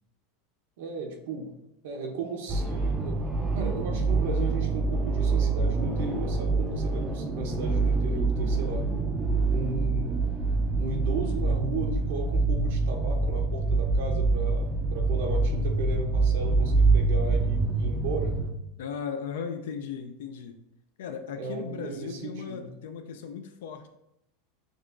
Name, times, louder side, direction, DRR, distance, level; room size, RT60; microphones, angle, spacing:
voice 1, 0.8-1.5 1.8-3.3 3.5-8.9 9.5-10.2 10.8-18.4 21.4-22.7, right 3 dB, 75° right, 3 dB, 0.7 m, -35 dB
sound 1, 2.5-18.5, right 3 dB, 15° right, 0.4 m, -26 dB
voice 2, 18.8-20.6 21.0-23.9, left 6 dB, 85° left, 6 dB, 0.3 m, -37 dB
6.2 x 2.4 x 2.4 m, 0.82 s
supercardioid pair, 160°, 0 cm